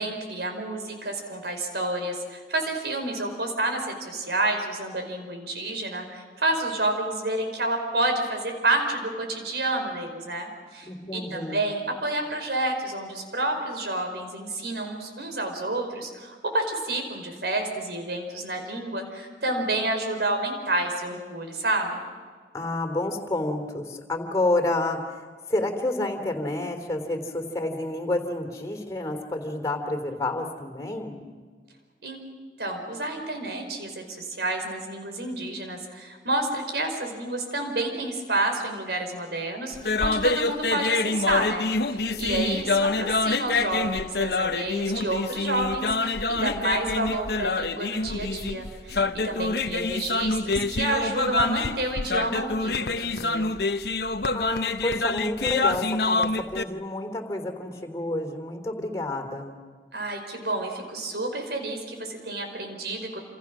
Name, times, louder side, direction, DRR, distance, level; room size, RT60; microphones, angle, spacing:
voice 1, 0.0-22.0 32.0-32.2 32.6-53.5 59.9-63.2, right 2 dB, 70° right, 4 dB, 4.9 m, -29 dB
voice 2, 10.8-11.7 22.5-25.2 25.5-31.4 42.1-42.3 54.3-59.6, left 2 dB, 20° left, 4 dB, 3.3 m, -29 dB
sound 1, 39.7-56.6, left 3 dB, 70° left, 1.0 m, -26 dB
28.5 x 28.0 x 6.2 m, 1.5 s
head